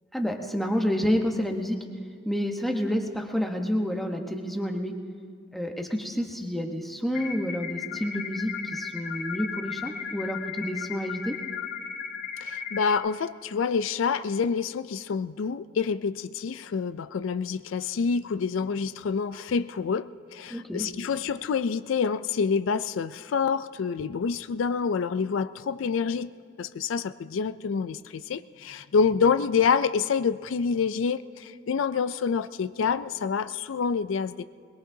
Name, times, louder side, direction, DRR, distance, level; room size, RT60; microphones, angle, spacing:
voice 1, 0.1-1.8 2.3-5.0 5.5-11.4 20.5-20.9, equal, ahead, 2 dB, 1.0 m, -29 dB
sound 1, 7.1-12.9, left 6 dB, 45° left, 1.1 m, -36 dB
voice 2, 12.4-26.3 26.6-34.4, left 5 dB, 85° left, 13 dB, 0.4 m, -27 dB
22.0 x 21.5 x 2.7 m, 2.1 s
head